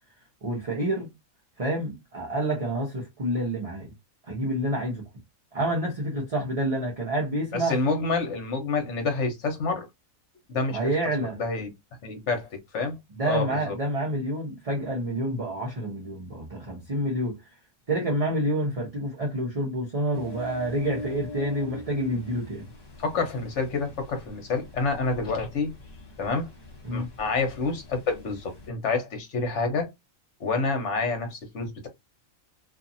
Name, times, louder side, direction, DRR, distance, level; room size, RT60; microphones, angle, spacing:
voice 1, 0.4-1.1 1.6-3.9 4.3-5.0 5.5-7.8 10.7-11.4 13.1-17.4 17.9-22.7 26.8-27.1, right 1 dB, 30° right, 0.7 m, -28 dB
voice 2, 7.5-9.9 10.5-10.9 11.4-11.7 12.0-13.0 13.2-13.8 23.0-25.7 26.2-26.5 26.9-29.9 30.4-31.9, left 3 dB, 60° left, 1.2 m, -28 dB
Ocean, 20.1-28.7, left 2 dB, 25° left, 0.6 m, -43 dB
2.6 x 2.6 x 2.6 m
omnidirectional pair, 1.4 m